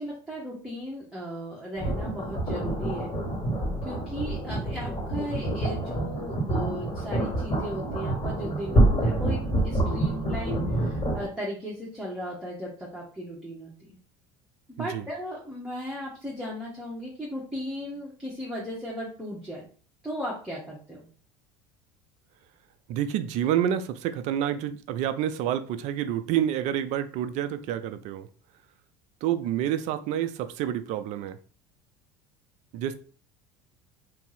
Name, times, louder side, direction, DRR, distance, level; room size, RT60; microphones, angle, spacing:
voice 1, 0.0-3.1 3.8-9.4 9.6-14.0 14.8-19.6 20.0-21.1, equal, 5° right, 0.9 m, -36 dB
sound 1, 1.8-11.3, right 1 dB, 30° left, 1.5 m, -27 dB
voice 2, 22.9-28.3 29.2-31.4 32.7-32.9, right 10 dB, 60° right, 0.4 m, -28 dB
2.6 x 2.0 x 3.9 m
hypercardioid pair, 85°, 14 cm